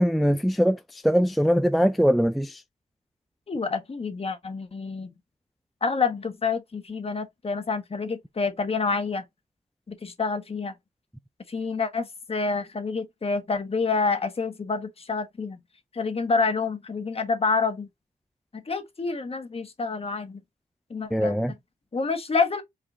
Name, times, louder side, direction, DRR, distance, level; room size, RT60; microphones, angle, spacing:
voice 1, 0.0-2.6 21.1-21.5, equal, ahead, 0.4 m, -22 dB
voice 2, 3.5-5.1 5.8-9.2 9.9-10.7 11.5-15.6 15.9-17.9 18.5-20.4 20.9-21.4 21.9-22.6, left 4 dB, 40° left, 1.3 m, -28 dB
4.8 x 3.5 x 2.8 m
cardioid pair, 75°, 16 cm